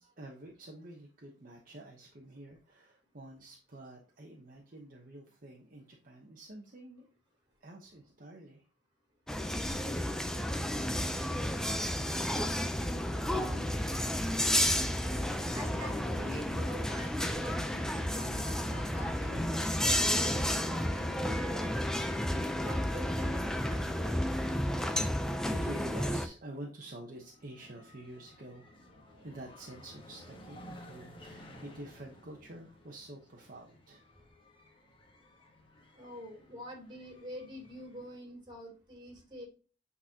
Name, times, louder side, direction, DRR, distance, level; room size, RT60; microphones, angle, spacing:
voice 1, 0.0-7.1 7.6-8.6 24.4-24.9 25.2-28.6 29.2-34.0, right 1 dB, 50° right, 0 dB, 1.0 m, -48 dB
sound 1, 9.3-26.3, left 1 dB, 5° left, 0.6 m, -32 dB
voice 2, 13.3-13.7 14.4-21.7 22.1-24.2 35.9-39.5, left 1 dB, 25° right, 0 dB, 3.1 m, -47 dB
sound 2, 27.1-38.2, left 1 dB, 30° left, 1.3 m, -55 dB
8.6 x 4.1 x 2.9 m, 0.35 s
head